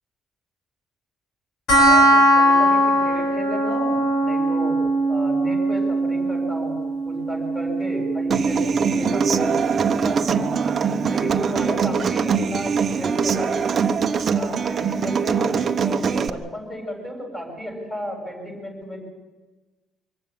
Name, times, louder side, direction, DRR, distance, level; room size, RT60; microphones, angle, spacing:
sound 1, 1.7-12.7, right 1 dB, 60° left, 6.8 m, -21 dB
voice 1, 1.7-4.8 5.1-6.8 7.1-9.6 10.0-10.5 11.1-13.6 14.3-19.0, equal, 10° left, 1 dB, 7.6 m, -33 dB
Human voice / Acoustic guitar, 8.3-16.3, right 6 dB, 30° right, 1.0 m, -22 dB
24.0 x 15.5 x 8.7 m, 1.2 s
cardioid pair, 170°, 0 cm